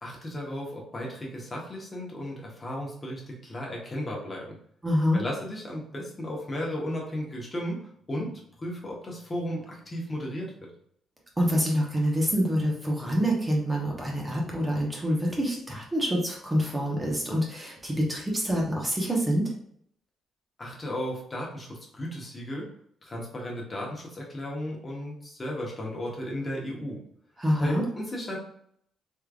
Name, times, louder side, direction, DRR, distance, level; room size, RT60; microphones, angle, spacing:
voice 1, 0.0-4.6 5.1-10.7 20.6-22.7 23.0-27.0 27.6-28.4, equal, 30° left, -2 dB, 1.1 m, -35 dB
voice 2, 4.8-5.2 11.4-19.5 27.4-27.8, equal, 15° right, -2 dB, 1.1 m, -26 dB
3.7 x 3.2 x 2.4 m, 0.67 s
cardioid pair, 90°, 0 cm